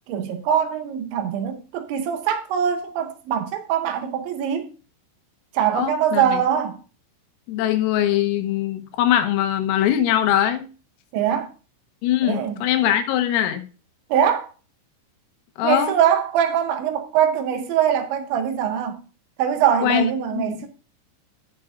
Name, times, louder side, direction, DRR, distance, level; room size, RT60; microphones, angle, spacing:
voice 1, 0.1-4.7 5.5-6.8 11.1-11.5 12.2-12.6 14.1-14.5 15.6-19.0 19.4-20.7, right 9 dB, 75° right, 2.8 m, -22 dB
voice 2, 5.7-6.4 7.5-10.7 12.0-13.7 15.6-15.9 19.8-20.1 20.3-20.7, left 11 dB, 85° left, 3.7 m, -22 dB
17.0 x 6.3 x 2.4 m
omnidirectional pair, 5.9 m